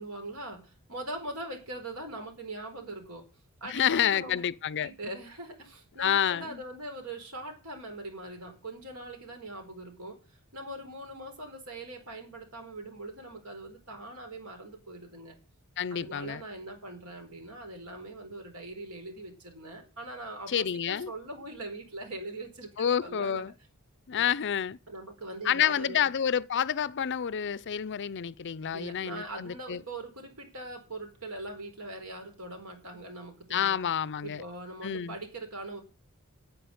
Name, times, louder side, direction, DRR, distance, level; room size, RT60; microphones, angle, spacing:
voice 1, 0.0-3.2 3.6-4.4 4.8-10.2 10.5-15.4 15.9-23.4 24.1-24.3 24.9-26.0 28.7-33.8 34.2-35.8, right 1 dB, 75° right, 4.5 m, -41 dB
voice 2, 3.6-4.9 6.0-6.6 15.8-16.4 20.5-21.1 22.8-23.5 24.1-24.8 25.4-29.8 33.5-34.4 34.8-35.2, left 9 dB, 55° left, 0.5 m, -29 dB
9.4 x 8.4 x 8.0 m
head